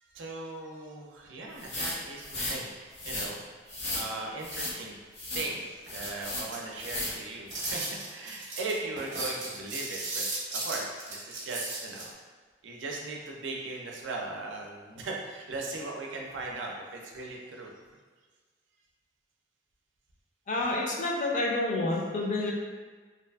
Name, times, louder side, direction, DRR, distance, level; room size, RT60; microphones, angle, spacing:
voice 1, 0.1-3.4 3.7-5.0 5.3-10.2 10.5-12.1 12.6-17.7, right 2 dB, 85° right, 0 dB, 0.4 m, -38 dB
sound 1, 1.6-2.6 2.9-3.3 3.7-4.1 4.4-4.7 5.1-5.5 5.9-6.5 6.8-7.2 7.5-7.8, left 1 dB, 65° left, 0.8 m, -35 dB
sound 2, 5.9-7.0 7.5-12.0, right 2 dB, 40° right, 0.6 m, -36 dB
voice 2, 20.5-22.5, left 2 dB, 40° left, -2 dB, 0.4 m, -29 dB
2.6 x 2.3 x 2.3 m, 1.4 s
head